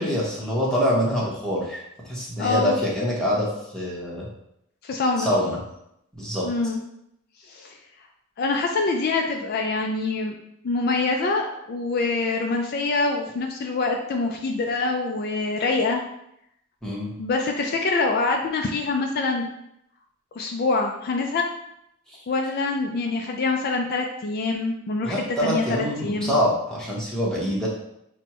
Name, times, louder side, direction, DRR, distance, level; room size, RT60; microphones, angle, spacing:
voice 1, 0.0-4.3 5.2-5.6 6.1-6.5 16.8-17.1 22.1-22.2 25.0-27.7, equal, 5° left, -5 dB, 0.9 m, -25 dB
voice 2, 2.4-2.8 4.8-5.3 6.4-6.8 7.5-7.8 8.4-10.4 10.6-16.0 17.2-19.5 20.4-21.5 22.3-26.3, left 3 dB, 50° left, 2 dB, 0.3 m, -25 dB
6.0 x 2.2 x 2.9 m, 0.79 s
head